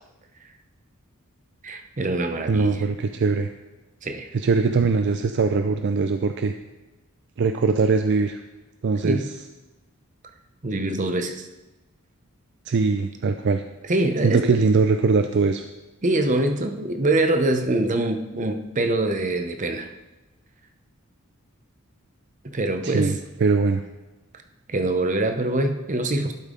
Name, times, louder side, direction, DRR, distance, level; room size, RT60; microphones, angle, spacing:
voice 1, 1.6-2.8 4.0-4.3 9.0-9.3 10.6-11.5 13.9-14.5 16.0-19.9 22.5-23.1 24.7-26.3, right 2 dB, 35° right, 6 dB, 0.7 m, -24 dB
voice 2, 2.5-3.5 4.3-6.5 7.4-8.4 8.8-9.3 12.7-13.6 14.2-15.7 22.8-23.8, right 4 dB, 55° right, 7 dB, 0.4 m, -21 dB
12.0 x 5.4 x 3.8 m, 1.1 s
head